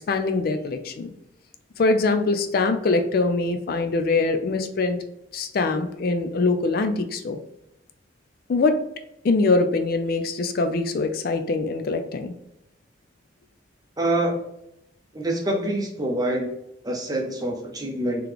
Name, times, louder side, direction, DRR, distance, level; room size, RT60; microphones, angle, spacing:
voice 1, 0.1-1.1 1.8-5.0 5.3-7.4 8.5-8.9 9.2-12.3, left 3 dB, 50° left, 7 dB, 0.3 m, -23 dB
voice 2, 14.0-14.4 15.1-16.5 16.8-18.3, right 1 dB, 20° right, 1 dB, 0.7 m, -25 dB
3.8 x 2.9 x 3.4 m, 0.84 s
head